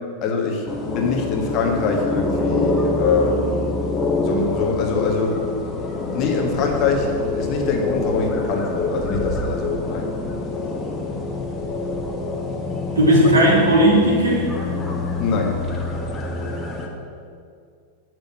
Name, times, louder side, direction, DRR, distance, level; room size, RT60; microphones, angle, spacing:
voice 1, 0.2-3.6 4.2-5.5 6.1-10.1 15.2-15.6, left 4 dB, 40° left, 2 dB, 1.4 m, -23 dB
sound 1, 0.7-16.9, left 2 dB, 20° left, 1.3 m, -26 dB
voice 2, 13.0-14.5, right 1 dB, 75° right, -4 dB, 2.7 m, -15 dB
8.5 x 6.2 x 7.2 m, 2.3 s
figure-of-eight pair, 90°, 0 cm